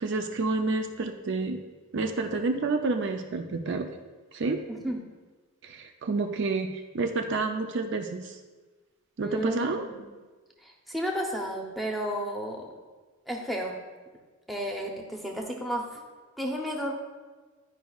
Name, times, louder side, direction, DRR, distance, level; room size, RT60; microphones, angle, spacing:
voice 1, 0.0-1.6 1.9-3.9 4.3-4.6 5.6-8.4 9.2-9.9, right 3 dB, 55° right, 4 dB, 0.4 m, -29 dB
voice 2, 4.7-5.0 9.2-10.1 10.6-12.8 13.3-13.8 14.5-16.0 16.4-17.0, equal, ahead, 0 dB, 0.7 m, -32 dB
10.5 x 5.1 x 2.3 m, 1.3 s
head